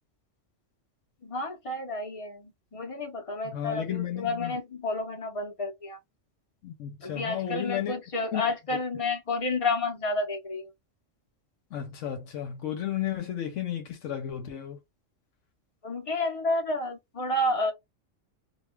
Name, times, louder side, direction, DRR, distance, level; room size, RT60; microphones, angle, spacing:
voice 1, 1.2-6.0 7.0-10.7 15.8-17.7, left 2 dB, 35° left, 0.7 m, -30 dB
voice 2, 3.5-4.5 6.6-8.0 8.3-8.4 11.7-14.8, left 10 dB, 75° left, 1.0 m, -33 dB
2.4 x 2.3 x 3.0 m
omnidirectional pair, 1.3 m